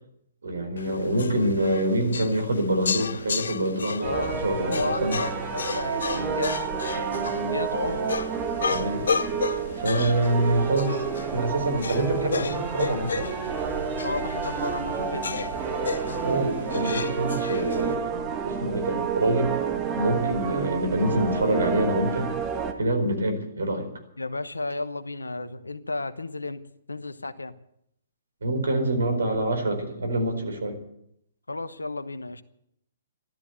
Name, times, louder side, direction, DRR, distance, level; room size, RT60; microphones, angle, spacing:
voice 1, 0.4-5.2 8.7-9.1 9.8-11.0 11.3-13.3 16.2-18.0 18.4-19.5 19.9-22.3 22.8-23.9 28.4-30.8, right 1 dB, 70° right, 6 dB, 4.5 m, -26 dB
sound 1, 0.8-17.9, left 5 dB, 70° left, 0.7 m, -33 dB
voice 2, 4.0-8.2 14.0-15.4 24.2-26.6 26.9-27.5 31.5-32.4, left 2 dB, 85° left, 12 dB, 1.0 m, -33 dB
sound 2, 4.0-22.7, right 6 dB, 25° right, 2.0 m, -30 dB
13.5 x 13.0 x 8.1 m, 0.75 s
figure-of-eight pair, 125°, 0 cm